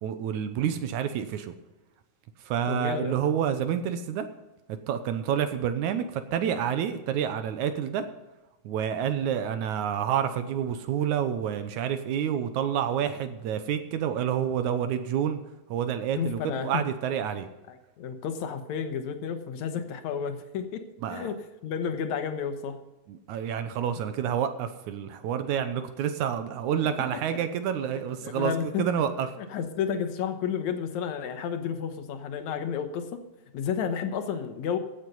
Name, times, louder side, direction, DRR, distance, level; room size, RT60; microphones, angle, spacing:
voice 1, 0.0-1.5 2.5-4.3 4.9-8.0 8.6-15.4 15.7-17.5 21.0-21.3 23.1-29.3, right 9 dB, 70° right, 9 dB, 2.0 m, -28 dB
voice 2, 2.7-3.2 16.2-16.7 17.7-21.4 21.6-22.8 27.1-27.2 27.9-28.9 29.4-33.2 33.5-34.8, left 7 dB, 65° left, 8 dB, 2.1 m, -31 dB
15.5 x 7.9 x 5.4 m, 1.1 s
omnidirectional pair, 4.1 m